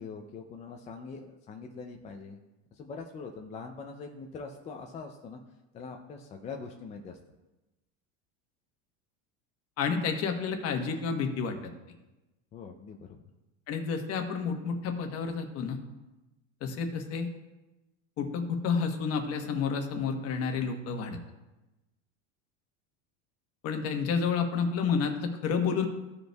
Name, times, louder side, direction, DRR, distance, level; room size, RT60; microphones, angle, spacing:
voice 1, 0.0-2.4 2.7-5.4 5.7-7.2 12.5-13.2, left 4 dB, 20° left, 3 dB, 0.3 m, -43 dB
voice 2, 9.8-11.7 13.7-15.8 16.6-17.3 18.2-21.2 23.6-25.9, left 5 dB, 40° left, 4 dB, 1.1 m, -30 dB
15.0 x 5.2 x 2.3 m, 1.0 s
supercardioid pair, 150°, 37 cm